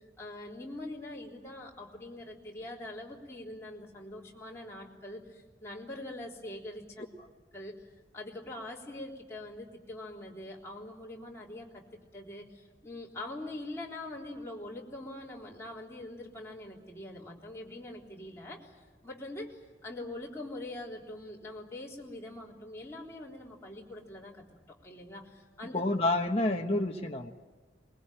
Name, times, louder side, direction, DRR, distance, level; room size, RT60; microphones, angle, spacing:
voice 1, 0.2-7.0 7.5-7.8 8.1-11.8 12.1-18.7 19.0-25.8, left 1 dB, 15° left, -4 dB, 3.7 m, -43 dB
voice 2, 25.7-27.3, left 2 dB, 35° left, 1 dB, 1.2 m, -28 dB
23.5 x 21.5 x 9.0 m, 1.3 s
head